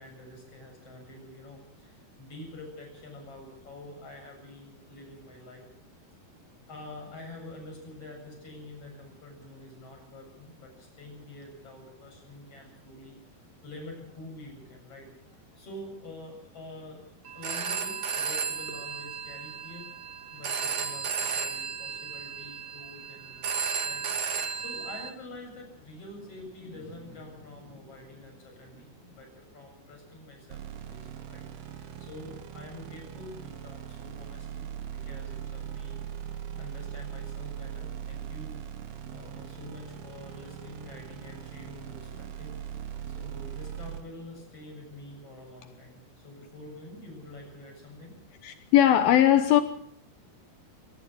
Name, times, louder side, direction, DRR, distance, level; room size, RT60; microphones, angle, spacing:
voice 1, 0.0-5.6 6.7-19.9 20.3-23.6 23.9-36.0 36.6-46.0 46.2-48.2, left 2 dB, 35° left, 8.6 m, -47 dB
Telephone, 17.2-25.1, right 6 dB, 45° right, 2.9 m, -34 dB
sound 1, 30.5-44.0, right 10 dB, 75° right, 3.3 m, -40 dB
voice 2, 48.4-49.6, left 11 dB, 75° left, 2.7 m, -19 dB
22.5 x 18.5 x 6.3 m
omnidirectional pair, 4.6 m